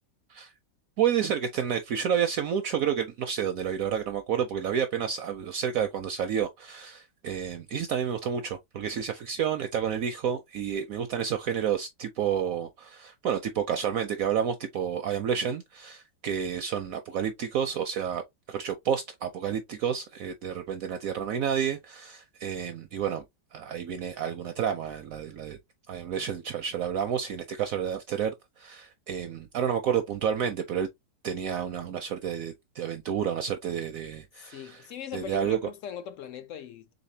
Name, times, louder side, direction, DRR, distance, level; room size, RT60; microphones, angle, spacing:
voice 1, 1.0-18.2 18.5-23.2 23.5-25.6 25.9-30.9 31.2-34.8 35.1-35.6, right 8 dB, 70° right, 0.8 m, -30 dB
voice 2, 34.4-36.9, left 9 dB, 65° left, 0.7 m, -40 dB
4.1 x 3.7 x 2.7 m
omnidirectional pair, 1.9 m